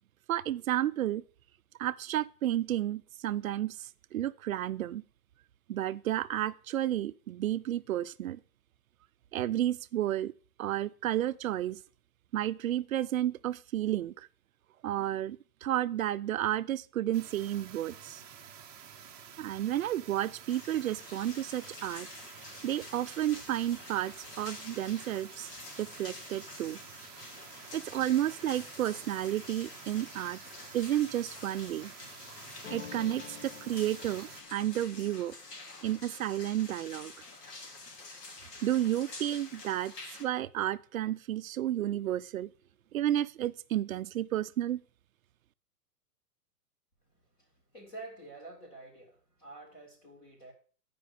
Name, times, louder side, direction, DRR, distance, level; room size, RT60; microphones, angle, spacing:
voice 1, 0.3-1.2 1.8-5.0 5.7-8.4 9.3-10.3 10.6-11.8 12.3-14.3 14.8-18.2 19.4-22.1 22.6-25.5 25.8-26.8 27.7-30.4 30.7-31.9 32.7-35.3 35.8-37.1 38.6-39.9 40.2-42.5 42.9-44.8, right 12 dB, 60° right, 0.5 m, -32 dB
sound 1, 17.1-34.4, right 8 dB, 25° right, 0.8 m, -51 dB
sound 2, 20.5-40.3, left 3 dB, 90° left, 3.2 m, -48 dB
sound 3, 32.6-38.2, left 7 dB, 45° left, 0.6 m, -51 dB
voice 2, 47.1-50.5, right 2 dB, 20° left, 2.2 m, -49 dB
10.0 x 5.2 x 6.5 m
hypercardioid pair, 180°, 47 cm